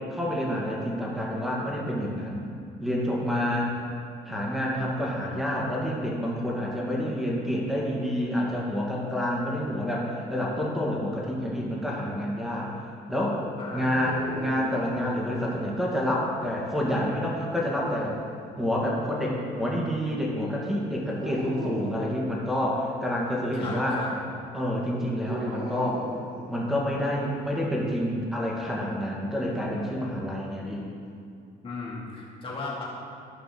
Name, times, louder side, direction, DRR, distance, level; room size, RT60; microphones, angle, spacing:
voice 1, 0.1-2.4 2.8-3.7 4.3-12.7 13.1-13.4 13.7-18.2 18.6-24.0 24.5-26.0 26.5-30.9, equal, ahead, -4 dB, 2.1 m, -28 dB
voice 2, 3.3-3.7 13.6-14.1 23.5-24.3 31.6-32.8, left 3 dB, 35° left, -5 dB, 2.2 m, -37 dB
sound 1, 14.0-15.6 17.2-18.3 21.2-22.0 25.2-26.9, right 2 dB, 70° right, 2.0 m, -39 dB
11.5 x 5.7 x 6.0 m, 2.4 s
cardioid pair, 110°, 17 cm